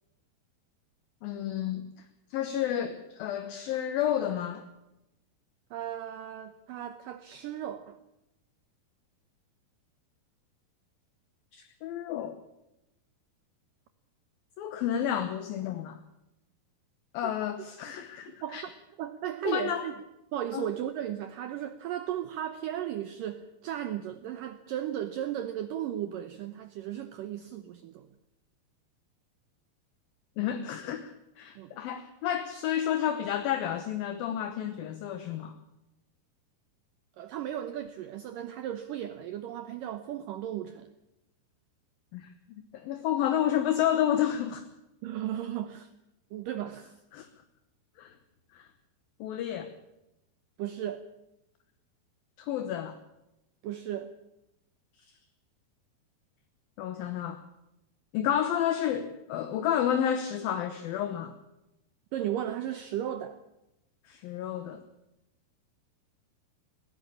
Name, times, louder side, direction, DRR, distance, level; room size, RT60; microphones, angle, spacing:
voice 1, 1.2-1.9 2.3-4.6 11.5-12.4 14.6-16.0 17.1-18.6 19.4-19.9 20.5-20.7 30.4-31.1 31.4-35.6 42.1-42.3 42.7-44.6 47.1-47.3 48.0-48.1 48.5-48.7 49.2-49.7 52.4-53.0 56.8-57.4 58.1-61.3 64.1-64.8, left 10 dB, 70° left, 2.6 m, -30 dB
voice 2, 5.7-8.0 17.2-17.3 18.4-18.7 19.0-19.9 20.3-28.1 31.6-31.7 37.2-40.9 45.0-45.9 46.3-46.9 50.6-51.1 53.6-54.1 62.1-63.4, right 11 dB, 75° right, 2.0 m, -35 dB
20.0 x 16.5 x 8.6 m
omnidirectional pair, 4.8 m